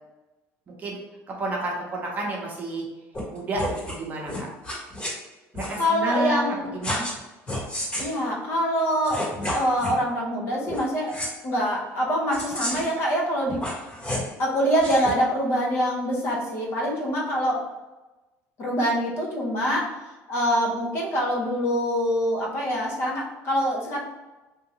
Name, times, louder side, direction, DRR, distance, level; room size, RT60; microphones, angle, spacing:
voice 1, 0.7-1.0 1.4-2.9 3.3-4.5 5.5-7.1, right 1 dB, 30° right, -2 dB, 0.8 m, -30 dB
sound 1, 3.1-3.2 3.5-4.0 4.2-5.1 5.5-5.8 6.8-7.2 7.5-8.1 8.8-8.9 9.0-10.0 10.7-10.8 11.1-11.3 12.3-12.9 13.5-14.3 14.8-15.1, left 1 dB, 25° left, 1.4 m, -30 dB
voice 2, 5.8-6.7 8.0-9.2 9.5-11.2 11.4-13.6 14.4-17.6 18.6-20.0 20.3-24.0, equal, 45° left, -2 dB, 0.8 m, -25 dB
3.6 x 2.7 x 2.9 m, 1.1 s
cardioid pair, 160°, 6 cm